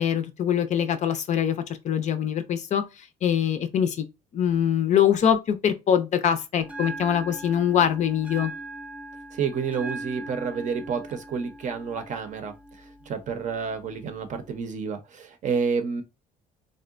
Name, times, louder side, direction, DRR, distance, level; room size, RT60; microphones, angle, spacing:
voice 1, 0.0-4.1 4.3-8.5, left 9 dB, 45° left, 0.4 m, -23 dB
Bell, 6.6-14.6, right 2 dB, 10° right, 0.6 m, -40 dB
voice 2, 9.3-12.5 13.1-16.0, right 5 dB, 45° right, 0.6 m, -29 dB
3.6 x 2.1 x 2.4 m
cardioid pair, 110°, 17 cm